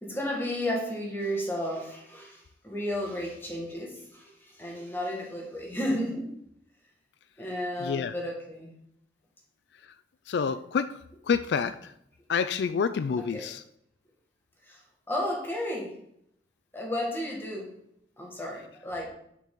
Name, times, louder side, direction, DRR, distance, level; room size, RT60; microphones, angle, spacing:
voice 1, 0.0-6.3 7.4-8.7 13.2-13.5 14.6-16.0 16.7-17.8 18.2-19.1, left 1 dB, 10° left, -2 dB, 1.7 m, -33 dB
voice 2, 7.8-8.1 10.3-11.0 11.2-11.9 12.3-13.6, left 6 dB, 75° left, 12 dB, 0.3 m, -28 dB
6.8 x 5.8 x 3.7 m, 0.72 s
head